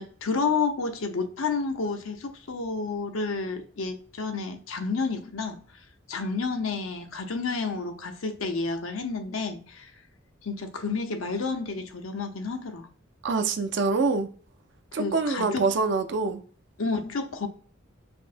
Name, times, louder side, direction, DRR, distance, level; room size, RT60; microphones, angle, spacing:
voice 1, 0.0-5.6 6.1-9.9 10.4-12.9 15.0-15.6 16.8-17.5, left 4 dB, 80° left, 0.7 m, -30 dB
voice 2, 13.2-14.3 14.9-16.4, right 4 dB, 60° right, 0.4 m, -25 dB
5.1 x 2.1 x 2.5 m
head